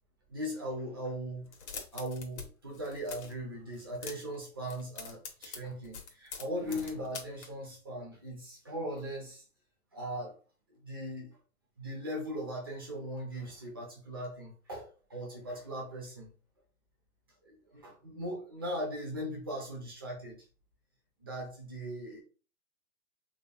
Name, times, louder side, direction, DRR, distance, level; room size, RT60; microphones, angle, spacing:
voice 1, 0.3-1.5 1.9-9.4 9.9-10.4 10.7-11.4 11.8-16.3 17.4-20.4 21.2-22.2, equal, 15° right, 0.4 m, -39 dB
sound 1, 1.5-2.5 2.7-3.4 3.7-4.4 4.6-7.5, left 5 dB, 50° left, 1.0 m, -44 dB
3.5 x 3.1 x 2.2 m
hypercardioid pair, 150°, 45 cm